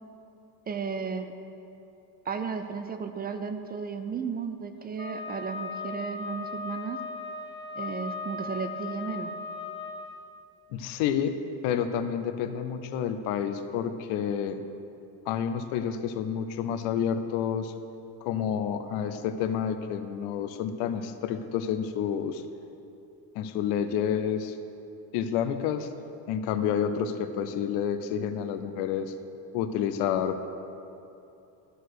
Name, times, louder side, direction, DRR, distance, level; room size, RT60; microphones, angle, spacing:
voice 1, 0.7-1.3 2.3-7.0 7.8-9.3, right 6 dB, 25° right, 8 dB, 0.4 m, -34 dB
Wind instrument woodwind instrument, 5.0-10.1, left 3 dB, 15° left, 0.7 m, -37 dB
voice 2, 10.7-11.4 11.6-14.6 15.3-17.7 18.2-22.4 23.3-24.6 25.1-25.9 26.3-29.1 29.5-30.5, left 8 dB, 85° left, 9 dB, 0.7 m, -29 dB
12.5 x 4.6 x 6.5 m, 2.8 s
cardioid pair, 125°, 39 cm